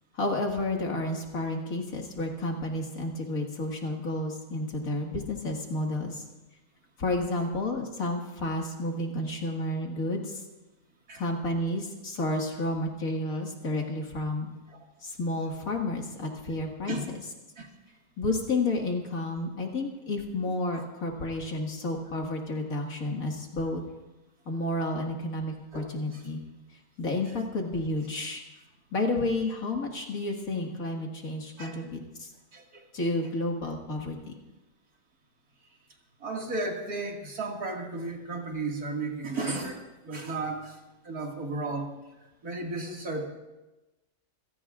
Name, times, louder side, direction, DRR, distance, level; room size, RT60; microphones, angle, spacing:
voice 1, 0.1-6.2 7.0-10.4 11.1-14.5 15.0-17.0 18.2-23.8 24.5-26.4 27.0-28.4 28.9-32.3 32.9-34.3, left 2 dB, 60° left, 1 dB, 2.4 m, -31 dB
voice 2, 20.5-20.9 25.7-26.2 27.3-27.4 31.6-31.8 32.5-32.8 36.2-41.9 42.4-43.3, right 3 dB, 70° right, 0 dB, 2.6 m, -34 dB
27.0 x 17.0 x 2.5 m, 1.1 s
omnidirectional pair, 1.6 m